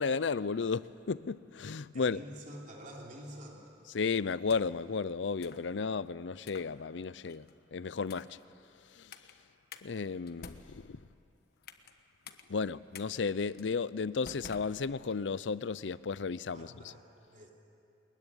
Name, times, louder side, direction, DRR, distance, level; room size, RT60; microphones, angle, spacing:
voice 1, 0.0-2.2 3.9-7.5 7.7-8.4 9.0-9.1 9.8-11.0 12.5-16.7, left 5 dB, 75° left, 0.5 m, -33 dB
voice 2, 1.9-3.6 16.5-17.0 17.3-17.5, equal, 45° right, 3.5 m, -47 dB
sound 1, 4.3-4.9 5.4-5.7 6.4-6.7 7.2-7.5 8.0-8.4 9.1-9.3 9.7-9.8 10.3-11.9 12.2-12.4 12.9-13.1 13.6-13.7 14.2-15.3, left 5 dB, 60° left, 1.3 m, -51 dB
22.5 x 21.0 x 10.0 m
head